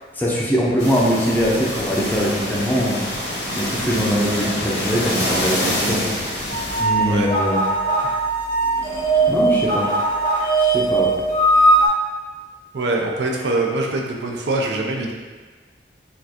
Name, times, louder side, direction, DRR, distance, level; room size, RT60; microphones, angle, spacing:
voice 1, 0.1-3.1 3.6-6.4 6.8-7.7 9.3-9.9 10.6-11.1, equal, 10° left, -5 dB, 0.5 m, -22 dB
sound 1, 0.8-6.8, left 1 dB, 85° left, 1.0 m, -26 dB
sound 2, 6.5-11.9, right 2 dB, 45° right, 1.1 m, -19 dB
voice 2, 12.7-15.1, right 2 dB, 80° right, 0 dB, 0.5 m, -23 dB
4.3 x 2.4 x 2.8 m, 1.4 s
head